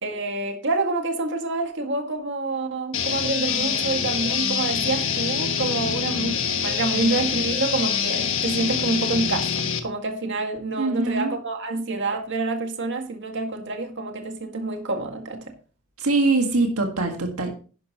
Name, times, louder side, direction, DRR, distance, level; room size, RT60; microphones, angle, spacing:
voice 1, 0.0-15.4, right 3 dB, 55° right, 1.9 m, -27 dB
sound 1, 2.9-9.8, left 7 dB, 60° left, 1.4 m, -25 dB
voice 2, 10.8-11.3 16.0-17.5, right 3 dB, 75° right, 1.7 m, -23 dB
11.5 x 10.5 x 3.0 m
head